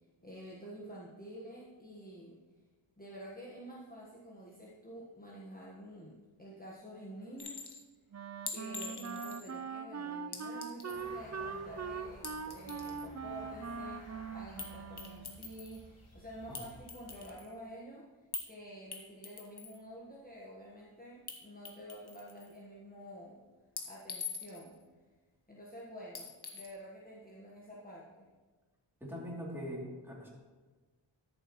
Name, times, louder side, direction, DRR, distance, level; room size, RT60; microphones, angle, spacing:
voice 1, 0.2-2.4 3.0-7.7 8.5-18.1 18.5-23.4 23.8-24.8 25.5-28.3, equal, 20° left, -5 dB, 1.3 m, -49 dB
Chink clink, 7.4-7.8 8.5-9.6 10.3-11.1 12.1-13.1 14.6-14.7 15.0-15.8 16.5-17.5 18.3-18.5 18.9-19.8 21.3-21.4 21.7-22.5 23.8-24.7 26.1-26.7, left 4 dB, 50° left, 1.3 m, -44 dB
Wind instrument woodwind instrument, 8.1-15.5, right 5 dB, 35° right, 0.4 m, -42 dB
sound 1, 10.9-17.3, left 1 dB, 75° left, 1.9 m, -55 dB
voice 2, 29.0-30.3, equal, 5° right, -5 dB, 2.9 m, -42 dB
13.0 x 7.3 x 3.1 m, 1.3 s
wide cardioid pair, 55°, 49 cm